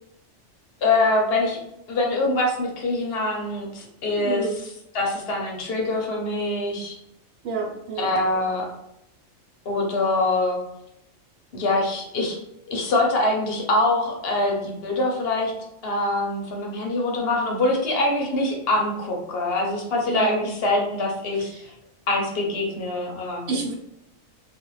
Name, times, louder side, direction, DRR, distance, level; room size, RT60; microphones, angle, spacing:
voice 1, 0.8-1.6 1.9-7.0 8.0-8.7 9.7-10.6 11.5-12.4 12.7-15.5 15.8-21.5 22.1-23.5, left 2 dB, 60° left, 0 dB, 0.9 m, -24 dB
voice 2, 4.2-4.6 7.4-8.1 20.1-20.5 21.5-21.7 23.5-23.7, right 4 dB, 85° right, 0 dB, 1.0 m, -29 dB
2.4 x 2.4 x 3.0 m, 0.83 s
omnidirectional pair, 1.2 m